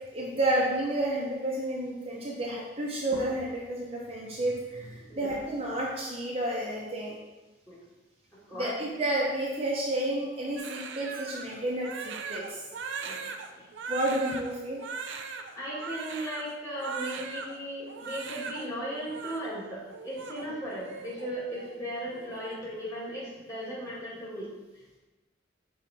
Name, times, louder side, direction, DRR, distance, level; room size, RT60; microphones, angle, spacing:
voice 1, 0.1-7.2 8.5-12.6 13.9-14.8, right 1 dB, 30° right, -4 dB, 0.8 m, -31 dB
voice 2, 5.0-5.3 7.7-7.8 8.5-8.7 13.0-13.2 13.5-13.7 15.6-24.5, equal, 20° left, -8 dB, 2.1 m, -37 dB
Crying sobbing, 10.6-17.6 17.9-18.6 18.9-19.4 19.9-21.3 21.5-21.8 22.1-22.6, right 5 dB, 65° right, 0.5 m, -39 dB
6.1 x 3.9 x 4.2 m, 1.2 s
head